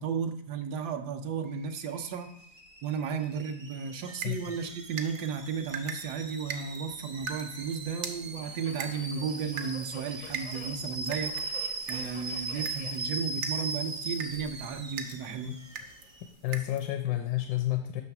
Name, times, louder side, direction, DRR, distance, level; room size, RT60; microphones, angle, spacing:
voice 1, 0.0-2.3 2.8-11.4 11.9-15.6, right 6 dB, 80° right, 6 dB, 1.2 m, -34 dB
Alarm / Boiling, 1.5-16.3, right 3 dB, 40° right, 0.4 m, -40 dB
voice 2, 4.2-4.6 15.5-15.6 16.4-18.0, left 14 dB, 80° left, 7 dB, 1.1 m, -30 dB
sound 1, 4.2-16.9, right 6 dB, 60° right, 0.8 m, -43 dB
Subway metro underground, 5.7-16.3, left 5 dB, 65° left, 0.4 m, -53 dB
7.1 x 3.3 x 5.8 m, 0.69 s
omnidirectional pair, 1.8 m